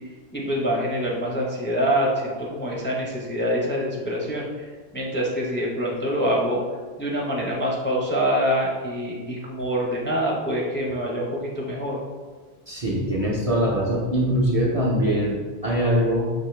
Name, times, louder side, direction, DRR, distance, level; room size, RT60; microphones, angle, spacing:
voice 1, 0.3-6.6 7.0-12.0, equal, 15° left, -3 dB, 0.5 m, -25 dB
voice 2, 12.7-16.3, equal, 40° right, -4 dB, 0.6 m, -22 dB
6.0 x 2.7 x 3.2 m, 1.4 s
omnidirectional pair, 1.1 m